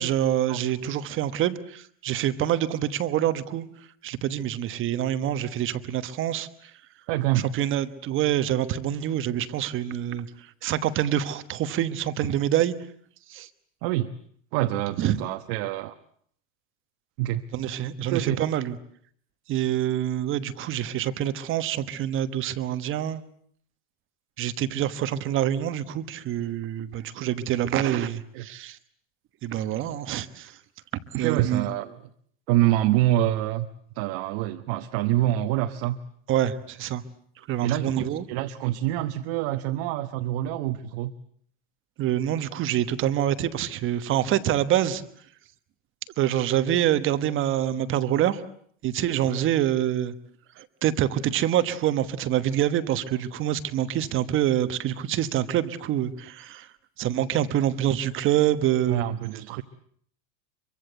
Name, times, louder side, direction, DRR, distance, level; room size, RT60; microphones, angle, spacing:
voice 1, 0.0-3.7 4.0-6.7 7.5-12.7 13.3-13.5 15.0-15.1 17.5-18.8 19.5-23.2 24.4-28.8 29.4-30.6 31.1-31.7 36.3-37.0 37.5-38.2 42.0-45.0 46.2-48.4 48.8-50.1 50.6-56.7 57.0-59.0, right 11 dB, 30° right, 1.2 m, -26 dB
voice 2, 7.1-7.5 13.8-14.1 14.5-16.0 17.2-17.4 18.1-18.4 28.3-28.4 31.1-31.9 32.5-33.7 33.9-36.0 37.6-41.1 49.3-49.4 58.9-59.6, right 14 dB, 50° right, 1.2 m, -26 dB
24.5 x 24.0 x 7.9 m
supercardioid pair, 155°, 39 cm